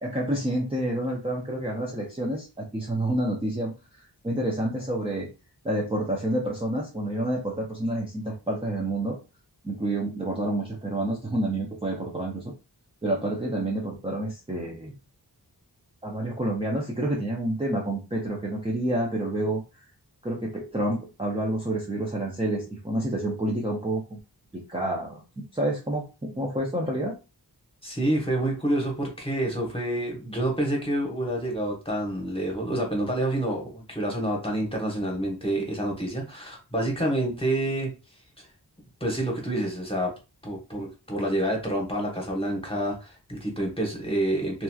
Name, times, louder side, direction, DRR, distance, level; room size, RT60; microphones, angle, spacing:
voice 1, 0.0-5.3 5.6-9.2 9.6-12.5 13.0-14.9 16.0-19.9 20.2-24.2 24.5-27.2, right 1 dB, 15° right, -4 dB, 0.6 m, -29 dB
voice 2, 27.8-37.9 39.0-40.1 40.4-44.6, right 1 dB, 15° left, -1 dB, 1.0 m, -28 dB
2.9 x 2.4 x 2.3 m, 0.30 s
wide cardioid pair, 55°, 41 cm